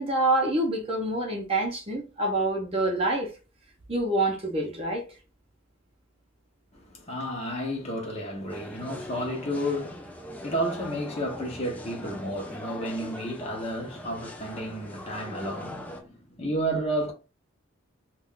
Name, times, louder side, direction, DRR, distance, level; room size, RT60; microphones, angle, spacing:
voice 1, 0.0-3.3 3.9-5.1, right 2 dB, 30° right, 0.7 m, -26 dB
voice 2, 6.7-17.1, equal, 30° left, 0.7 m, -32 dB
sound 1, 8.5-16.0, left 1 dB, 10° left, 0.3 m, -41 dB
2.4 x 2.2 x 3.6 m
head